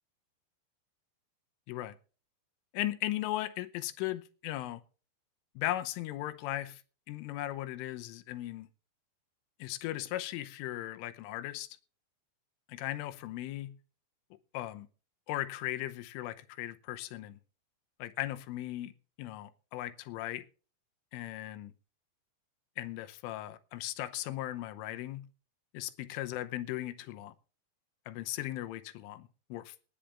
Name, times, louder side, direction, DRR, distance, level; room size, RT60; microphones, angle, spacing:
voice 1, 2.7-4.8 5.6-6.8 7.1-8.7 9.6-11.7 12.7-13.8 14.5-14.9 15.3-17.4 18.0-18.9 19.2-20.4 21.1-21.7 22.8-25.3 25.7-27.3 28.1-29.8, left 15 dB, 85° left, 3.3 m, -37 dB
19.0 x 9.9 x 3.4 m
omnidirectional pair, 5.7 m